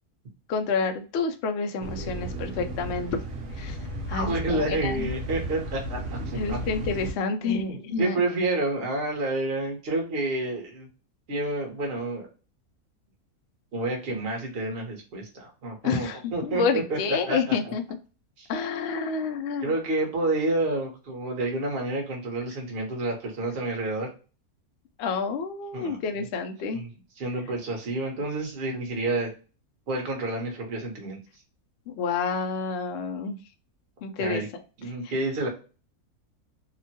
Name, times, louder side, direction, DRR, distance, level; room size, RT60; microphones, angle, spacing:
voice 1, 0.5-3.1 3.6-3.8 4.1-5.1 6.3-8.2 15.8-17.8 18.5-19.7 25.0-26.8 32.0-33.4 34.0-34.6, left 5 dB, 70° left, 5 dB, 0.6 m, -29 dB
sound 1, 1.8-7.1, equal, 65° right, 1.1 m, -34 dB
voice 2, 4.1-6.0 6.3-6.6 7.4-10.9 11.3-12.3 13.7-17.0 17.3-17.7 18.4-18.5 19.6-24.1 25.7-26.0 26.7-26.9 27.2-29.3 29.9-31.2 34.2-34.5 34.8-35.5, right 2 dB, 45° right, 1 dB, 1.0 m, -29 dB
2.9 x 2.2 x 2.7 m, 0.34 s
omnidirectional pair, 1.6 m